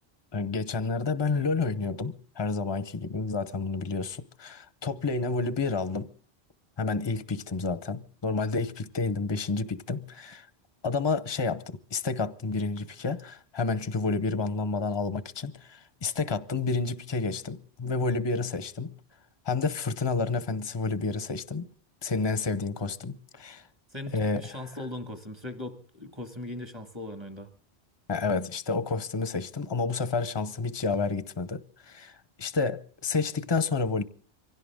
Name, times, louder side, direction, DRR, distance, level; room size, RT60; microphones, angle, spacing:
voice 1, 0.3-6.1 6.8-10.5 10.8-18.9 19.5-21.7 22.0-23.6 24.1-24.5 28.1-34.0, left 4 dB, 30° left, 0.8 m, -30 dB
voice 2, 23.9-27.5, left 2 dB, 25° right, 2.0 m, -39 dB
24.0 x 16.5 x 3.6 m
omnidirectional pair, 1.1 m